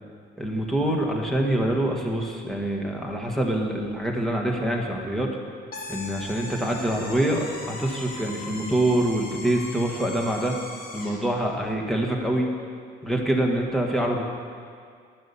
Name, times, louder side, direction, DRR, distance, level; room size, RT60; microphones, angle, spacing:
voice 1, 0.4-5.4 5.9-10.6 10.9-12.5 13.0-14.2, right 1 dB, ahead, -1 dB, 1.7 m, -25 dB
sound 1, 5.7-11.3, left 2 dB, 45° left, 2.0 m, -39 dB
10.5 x 6.9 x 7.2 m, 2.1 s
cardioid pair, 90°, 21 cm